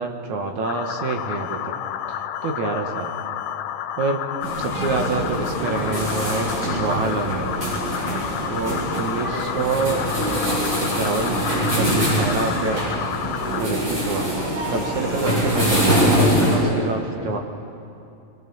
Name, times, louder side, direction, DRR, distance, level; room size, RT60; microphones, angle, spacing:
voice 1, 0.0-1.7 2.4-3.1 4.0-4.2 4.6-7.6 8.5-10.0 10.8-11.4 11.7-12.8 13.6-14.3 14.7-15.8 16.2-17.4, right 3 dB, 75° right, 4 dB, 2.8 m, -26 dB
sound 1, 0.6-13.7, left 10 dB, 90° left, 2.2 m, -30 dB
sound 2, 4.4-16.6, right 1 dB, 40° right, 8.8 m, -24 dB
voice 2, 15.2-17.4, left 5 dB, 55° left, 0 dB, 1.3 m, -30 dB
23.0 x 22.5 x 7.1 m, 2.7 s
omnidirectional pair, 3.5 m